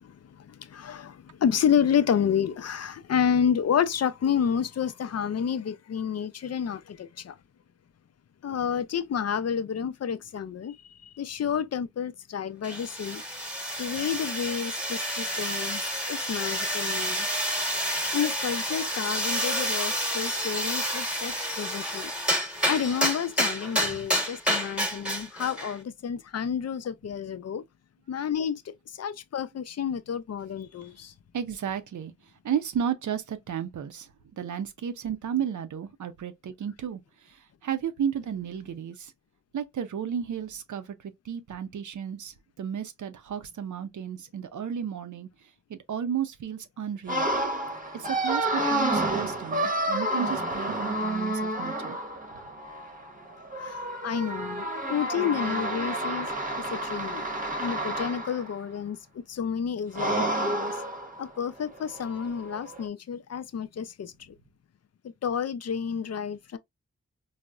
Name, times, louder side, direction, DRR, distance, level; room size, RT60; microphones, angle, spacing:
voice 1, 0.0-7.3 8.4-10.8 11.0-13.2 13.8-15.8 16.1-17.3 17.7-17.8 18.1-22.1 22.7-27.6 28.1-31.1 53.6-56.3 56.7-57.2 57.6-60.8 61.2-64.1 65.2-66.6, left 8 dB, 60° left, 0.4 m, -30 dB
sound 1, 12.6-25.8, equal, 5° right, 1.1 m, -29 dB
voice 2, 31.3-32.1 32.4-34.1 34.4-37.0 37.3-39.1 39.5-45.3 45.7-47.3 47.9-52.0, right 8 dB, 85° right, 0.5 m, -33 dB
sound 2, 47.1-58.5 60.0-61.4 61.7-62.9, right 1 dB, 30° right, 0.8 m, -30 dB
3.9 x 2.0 x 2.3 m
cardioid pair, 55°, 29 cm